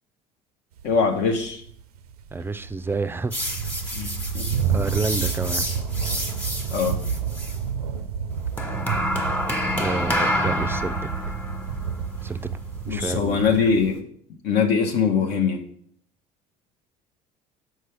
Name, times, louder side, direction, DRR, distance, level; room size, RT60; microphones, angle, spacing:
voice 1, 0.8-1.6 3.9-4.5 6.7-7.0 12.9-14.0 14.4-15.7, left 5 dB, 60° left, 3 dB, 0.8 m, -22 dB
sound 1, 0.8-13.9, right 7 dB, 85° right, 0.4 m, -30 dB
voice 2, 2.3-3.3 4.6-5.7 9.8-11.1 12.2-12.4 12.9-13.5, right 3 dB, 10° right, 13 dB, 0.4 m, -29 dB
sound 2, 3.3-7.6 8.6-14.0, equal, 10° left, 1.3 m, -29 dB
6.5 x 4.6 x 3.3 m, 0.63 s
hypercardioid pair, 65°, 19 cm